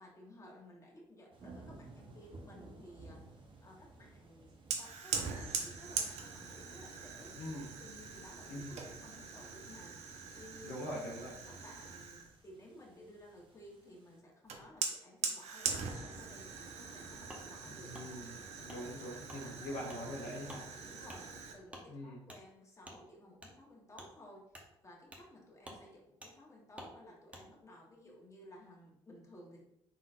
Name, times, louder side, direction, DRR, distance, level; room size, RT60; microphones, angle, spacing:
voice 1, 0.0-7.3 7.8-10.1 10.3-11.0 11.3-18.2 18.6-18.7 19.4-19.8 20.7-29.6, left 1 dB, 25° left, -2 dB, 1.5 m, -56 dB
sound 1, 1.3-14.2, right 2 dB, 40° right, 1.0 m, -58 dB
Fire, 4.7-12.4 14.5-21.6, right 5 dB, 60° right, 0.7 m, -42 dB
voice 2, 7.4-7.7 8.5-8.8 10.6-11.3 17.6-18.4 18.6-20.6 21.9-22.2, left 1 dB, 65° left, -2 dB, 1.0 m, -43 dB
Wood, 17.3-17.4 17.9-18.1 18.7-18.8 19.3-19.4 19.9-20.0 20.5-20.6 21.1-21.2 21.7-21.9 22.3-22.4 22.8-23.0 23.4-23.5 23.9-24.1 24.5-24.7 25.1-25.3 25.6-25.8 26.2-26.3 26.8-26.9 27.3-27.4, equal, 10° right, 1.1 m, -50 dB
4.0 x 3.7 x 2.6 m, 0.79 s
hypercardioid pair, 55°, 13 cm